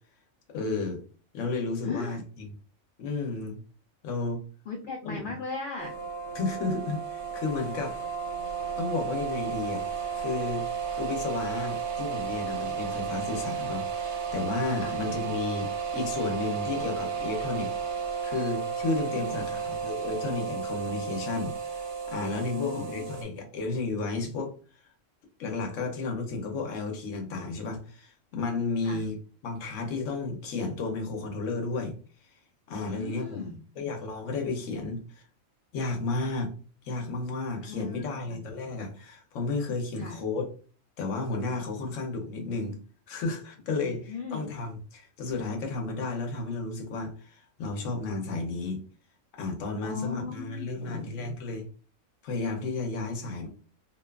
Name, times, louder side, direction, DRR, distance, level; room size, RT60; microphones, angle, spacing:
voice 1, 0.5-1.0 1.3-2.5 3.0-3.6 4.0-4.4 5.0-5.1 6.3-8.0 8.8-9.8 10.2-10.6 10.9-24.5 25.4-29.2 29.4-32.0 32.7-35.2 35.7-36.5 36.8-40.5 41.0-42.8 43.1-48.8 49.3-51.7 52.2-53.5, left 3 dB, 70° left, 4 dB, 1.0 m, -32 dB
voice 2, 1.8-2.2 4.7-5.9 14.8-15.0 19.1-19.5 22.5-23.1 28.8-29.0 32.9-33.6 37.6-38.4 39.9-40.2 41.8-41.9 43.8-44.5 49.8-51.1, left 5 dB, 85° left, 2 dB, 0.4 m, -37 dB
sound 1, 5.8-23.2, right 7 dB, 65° right, 0.8 m, -33 dB
2.7 x 2.2 x 2.2 m, 0.40 s
omnidirectional pair, 1.4 m